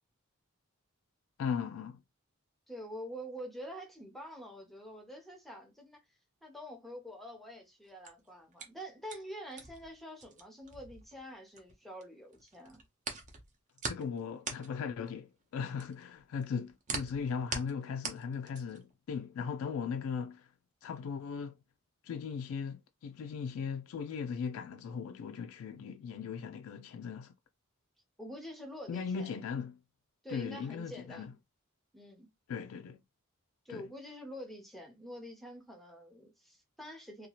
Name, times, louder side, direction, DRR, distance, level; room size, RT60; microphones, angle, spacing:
voice 1, 1.4-2.0 13.9-20.5 20.8-21.6 22.0-27.3 28.9-29.8 30.3-31.3 32.5-33.0 33.7-33.9, left 6 dB, 70° left, 0.3 m, -38 dB
voice 2, 2.7-6.0 6.4-12.8 28.2-29.4 30.2-31.3 31.9-32.3 33.7-37.3, equal, ahead, 0.6 m, -46 dB
Chewing Gum, 7.8-12.0 12.3-18.9, right 4 dB, 35° right, 0.7 m, -42 dB
2.8 x 2.3 x 2.8 m
head